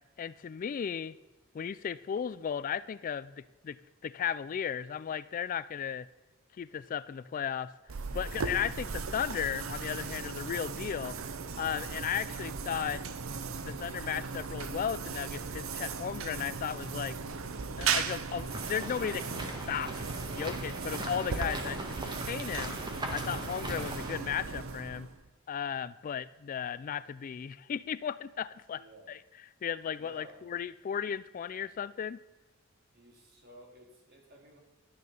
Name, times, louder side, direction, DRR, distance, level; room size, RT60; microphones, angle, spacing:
voice 1, 0.2-1.2 1.5-3.8 4.0-6.1 6.6-7.7 8.1-11.2 11.6-13.0 13.6-17.2 17.8-20.0 20.4-22.8 23.1-25.1 25.5-29.2 29.6-32.2, left 8 dB, 40° left, 16 dB, 0.3 m, -35 dB
sound 1, 7.9-25.3, right 5 dB, 75° right, 0.8 m, -37 dB
sound 2, 18.5-24.2, right 1 dB, 20° right, 1.5 m, -40 dB
voice 2, 28.7-29.1 29.9-30.5 32.9-34.6, right 1 dB, 50° right, 1 dB, 2.7 m, -54 dB
12.0 x 9.4 x 5.4 m, 1.1 s
head